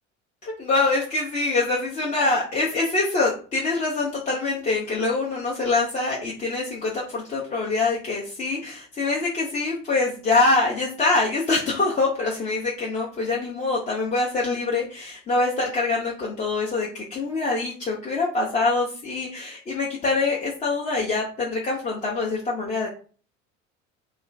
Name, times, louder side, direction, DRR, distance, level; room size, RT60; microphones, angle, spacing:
voice 1, 0.4-22.9, left 3 dB, 20° left, -3 dB, 0.5 m, -24 dB
2.3 x 2.3 x 3.0 m, 0.40 s
figure-of-eight pair, 65°, 40 cm